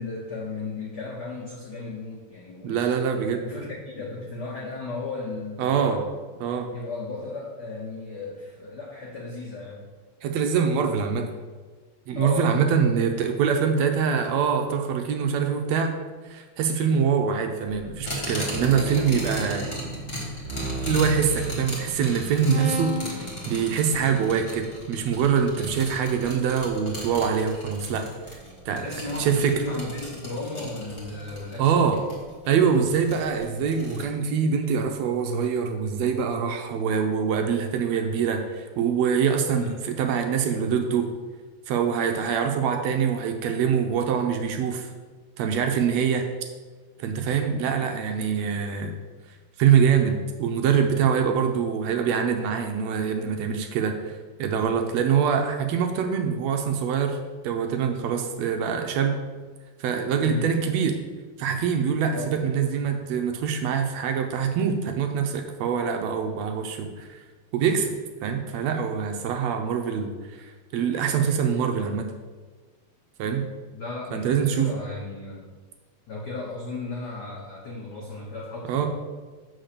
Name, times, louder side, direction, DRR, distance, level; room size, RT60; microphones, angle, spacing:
voice 1, 0.0-3.0 3.4-6.0 6.7-9.9 12.1-12.5 18.6-19.0 28.8-31.8 39.5-39.8 42.5-42.7 60.2-60.6 62.1-62.4 73.7-75.5 76.1-78.9, left 3 dB, 85° left, -2 dB, 0.9 m, -35 dB
voice 2, 2.6-3.4 5.6-6.0 6.4-6.7 10.2-11.3 12.1-15.9 16.3-19.7 20.9-28.1 28.7-28.9 29.2-29.6 31.6-32.0 32.5-41.1 41.7-44.9 45.4-46.3 47.0-48.9 49.6-57.2 57.4-59.2 59.8-61.0 61.4-67.2 67.5-67.9 68.2-72.1 73.2-73.5 74.1-74.7 78.7-78.9, right 7 dB, 75° right, 4 dB, 1.8 m, -24 dB
sound 1, 17.9-22.0 22.4-23.2, right 2 dB, 50° right, 1.6 m, -34 dB
sound 2, 18.0-34.0, equal, 25° left, 1.7 m, -37 dB
7.8 x 4.2 x 6.6 m, 1.4 s
omnidirectional pair, 3.4 m